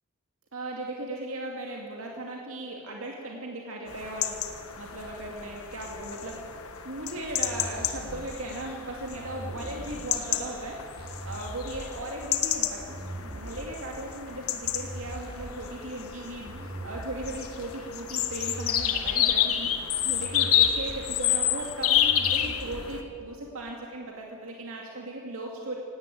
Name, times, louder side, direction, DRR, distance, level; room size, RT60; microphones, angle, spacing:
voice 1, 0.5-4.4 4.8-12.9 13.3-25.8, right 1 dB, 70° right, 0 dB, 2.4 m, -37 dB
sound 1, 3.9-23.0, left 10 dB, 75° left, 1.6 m, -30 dB
sound 2, 7.2-23.1, right 1 dB, 45° right, 2.7 m, -41 dB
18.0 x 17.0 x 9.2 m, 2.5 s
head